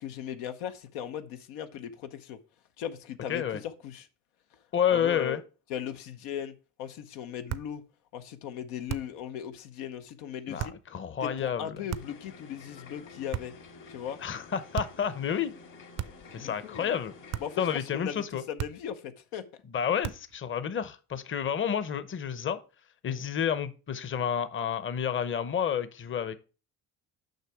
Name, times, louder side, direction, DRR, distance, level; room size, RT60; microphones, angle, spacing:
voice 1, 0.0-2.4 2.8-4.1 4.9-5.4 5.7-7.8 8.1-10.7 11.2-13.5 13.9-14.2 16.3-17.0 17.4-19.4 23.0-23.2, left 9 dB, 90° left, 0.8 m, -38 dB
voice 2, 3.3-3.6 4.7-5.4 10.5-11.8 14.2-15.5 16.3-17.1 17.6-18.4 19.7-22.6 23.0-26.4, left 8 dB, 35° left, 0.8 m, -30 dB
sound 1, 7.5-7.8 8.9-9.3 10.6-10.9 11.9-12.3 13.3-13.7 14.7-15.1 16.0-16.4 17.3-17.7 18.6-19.0 20.0-20.4, right 12 dB, 45° right, 0.5 m, -37 dB
sound 2, 11.9-17.8, left 4 dB, 55° left, 2.0 m, -50 dB
6.6 x 5.7 x 4.6 m
supercardioid pair, 85°, 36 cm